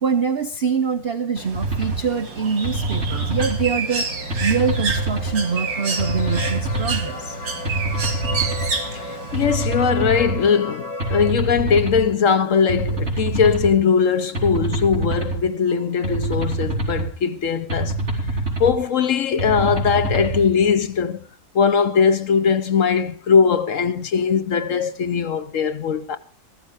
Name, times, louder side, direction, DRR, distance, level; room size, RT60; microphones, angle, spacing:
voice 1, 0.0-4.1 4.4-7.4, right 5 dB, 50° right, 0.7 m, -24 dB
Bird, 1.4-9.5, right 4 dB, 80° right, 2.7 m, -29 dB
sound 1, 1.5-2.0 2.6-3.7 4.3-5.3 6.0-7.0 7.6-8.7 9.3-10.4 11.0-12.0 12.7-13.7 14.3-15.4 16.0-17.1 17.7-18.7 19.4-20.4, right 2 dB, 35° right, 3.8 m, -25 dB
sound 2, 2.0-11.3, left 3 dB, 75° left, 2.6 m, -36 dB
voice 2, 8.9-18.0 18.6-21.2 21.5-26.2, left 6 dB, 55° left, 0.9 m, -20 dB
14.0 x 12.5 x 4.8 m
omnidirectional pair, 2.0 m